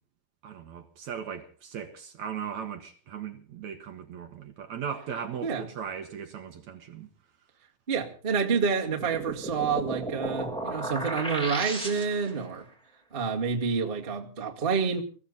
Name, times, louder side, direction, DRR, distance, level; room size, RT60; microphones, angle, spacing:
voice 1, 0.4-7.1, right 7 dB, 60° right, 2.3 m, -38 dB
voice 2, 7.9-12.7 13.1-15.0, right 5 dB, 25° right, 1.4 m, -28 dB
sound 1, 8.8-12.4, right 2 dB, ahead, 2.0 m, -34 dB
21.5 x 15.0 x 4.0 m
omnidirectional pair, 4.1 m